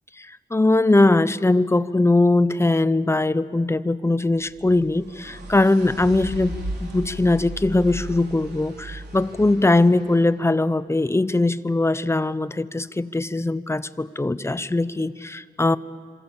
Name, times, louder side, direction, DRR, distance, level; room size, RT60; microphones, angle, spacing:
voice 1, 0.2-15.8, left 2 dB, 15° left, 14 dB, 0.6 m, -21 dB
sound 1, 4.4-10.4, right 1 dB, 75° right, 4.3 m, -36 dB
27.5 x 24.5 x 7.1 m, 2.2 s
wide cardioid pair, 115°, 17 cm